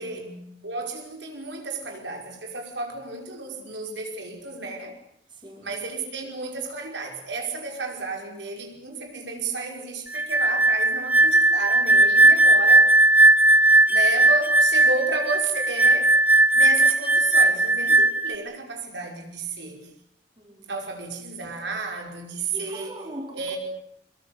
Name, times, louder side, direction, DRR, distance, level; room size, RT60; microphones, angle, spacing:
voice 1, 0.0-0.5 5.3-5.7 20.4-20.8 22.5-23.6, right 1 dB, 25° right, 2 dB, 4.8 m, -41 dB
voice 2, 0.6-5.0 5.6-12.9 13.9-16.1 16.5-19.9 20.7-22.9 23.3-23.6, right 3 dB, 75° right, 2 dB, 5.5 m, -32 dB
sound 1, 10.1-18.4, right 2 dB, 10° right, 0.9 m, -18 dB
24.5 x 23.0 x 8.2 m, 0.72 s
head